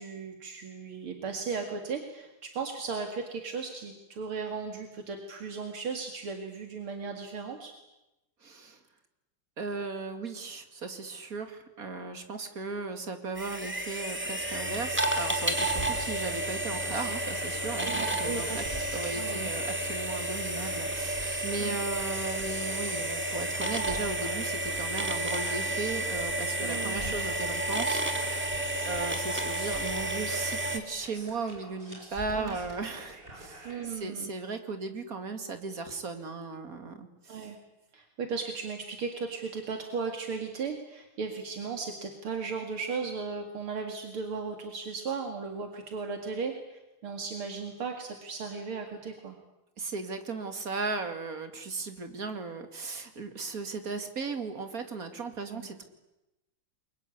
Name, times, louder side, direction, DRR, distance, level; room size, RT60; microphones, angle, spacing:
voice 1, 0.0-7.7 17.8-18.7 19.2-19.5 21.6-21.8 26.6-27.2 32.3-32.6 33.6-34.3 37.3-37.6 37.9-49.4 55.5-55.7, right 5 dB, 75° right, 4 dB, 3.0 m, -36 dB
voice 2, 8.4-8.8 9.6-18.6 18.9-28.0 28.8-37.5 49.8-55.8, right 4 dB, 40° right, 7 dB, 2.8 m, -36 dB
sound 1, 13.4-30.8, right 1 dB, 5° right, 2.4 m, -31 dB
sound 2, 15.6-33.8, right 1 dB, 25° right, 6.3 m, -47 dB
29.5 x 23.0 x 8.5 m, 0.96 s
omnidirectional pair, 2.4 m